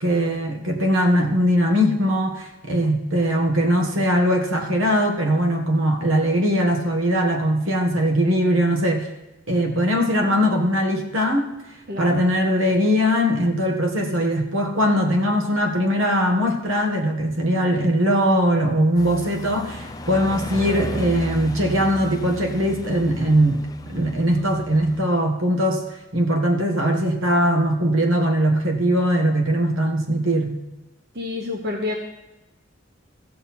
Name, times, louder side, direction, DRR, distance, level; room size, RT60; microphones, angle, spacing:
voice 1, 0.0-9.1 9.5-11.5 12.0-25.8 26.1-30.6, equal, 75° right, 3 dB, 1.7 m, -20 dB
voice 2, 11.9-12.3 31.1-31.9, left 2 dB, 50° right, 1 dB, 1.2 m, -28 dB
sound 1, 18.9-25.1, left 1 dB, 20° left, 0.5 m, -34 dB
15.5 x 6.6 x 4.4 m, 1.0 s
head